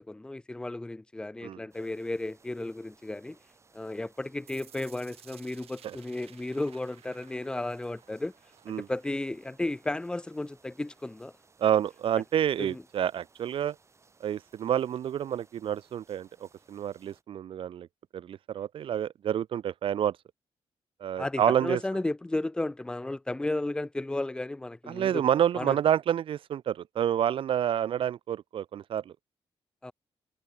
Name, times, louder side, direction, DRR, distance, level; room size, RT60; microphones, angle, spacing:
voice 1, 0.0-3.4 3.7-8.3 8.7-11.3 12.6-12.8 21.2-25.2 25.5-25.8 29.8-29.9, left 2 dB, 10° left, 0.5 m, -34 dB
sound 1, 1.7-17.2, right 4 dB, 30° right, 7.0 m, -63 dB
sound 2, 4.5-10.5, right 10 dB, 80° right, 6.1 m, -57 dB
voice 2, 11.6-13.8 14.2-17.9 18.1-20.2 21.0-21.8 24.9-29.1, right 10 dB, 60° right, 0.5 m, -28 dB
wide cardioid pair, 140°, 10 cm